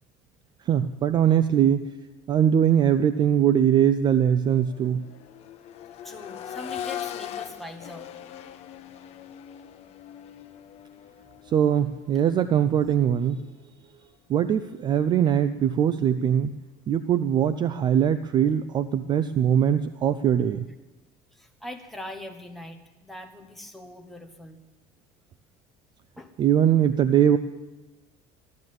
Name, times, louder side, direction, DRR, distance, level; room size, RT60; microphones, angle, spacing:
voice 1, 0.7-1.9 2.3-5.0 11.5-13.4 14.3-16.5 16.9-20.7 26.4-27.4, right 9 dB, 30° right, 12 dB, 0.4 m, -21 dB
Accelerating revving vroom, 3.1-3.3 3.7-13.6 15.3-15.4, left 10 dB, 45° left, 1.0 m, -41 dB
voice 2, 6.0-8.1 21.3-24.6 26.2-26.3, left 1 dB, ahead, 3 dB, 1.2 m, -41 dB
15.0 x 11.5 x 7.7 m, 1.1 s
cardioid pair, 165°, 15 cm